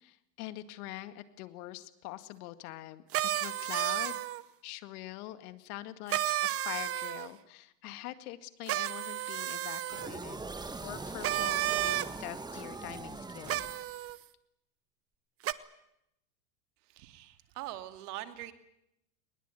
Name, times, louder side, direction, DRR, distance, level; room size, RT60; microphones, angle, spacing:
voice 1, 0.0-3.0 3.4-4.2 4.6-10.4 10.8-13.6, left 15 dB, 65° left, 12 dB, 2.1 m, -44 dB
sound 1, 3.1-4.4 6.1-7.3 8.7-10.1 11.2-12.1 13.5-14.2 15.4-15.5, right 13 dB, 30° right, 0.9 m, -32 dB
sound 2, 9.9-14.1, right 3 dB, 10° right, 1.6 m, -42 dB
voice 2, 16.9-18.5, right 15 dB, 70° right, 9 dB, 2.5 m, -43 dB
21.5 x 20.5 x 9.2 m, 0.81 s
supercardioid pair, 130°, 49 cm